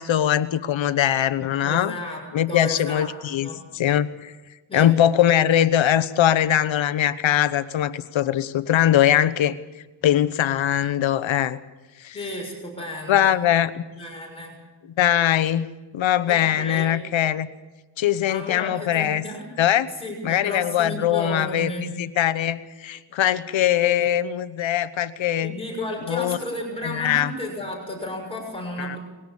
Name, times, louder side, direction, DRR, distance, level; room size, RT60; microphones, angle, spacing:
voice 1, 0.0-1.9 2.3-3.5 3.7-4.3 4.7-9.6 10.0-11.6 12.0-12.2 13.1-13.8 15.0-15.7 15.9-17.5 18.0-19.2 19.6-19.9 20.2-25.5 26.1-26.4 26.8-27.3 28.8-29.0, left 11 dB, 70° left, 13 dB, 1.1 m, -21 dB
voice 2, 1.6-3.1 3.4-3.6 4.7-4.9 12.1-13.4 13.9-14.6 16.3-16.9 18.3-19.5 20.0-21.9 24.0-24.1 25.4-29.0, left 1 dB, 10° left, -1 dB, 6.5 m, -33 dB
21.0 x 17.5 x 7.1 m, 1.2 s
wide cardioid pair, 135°, 47 cm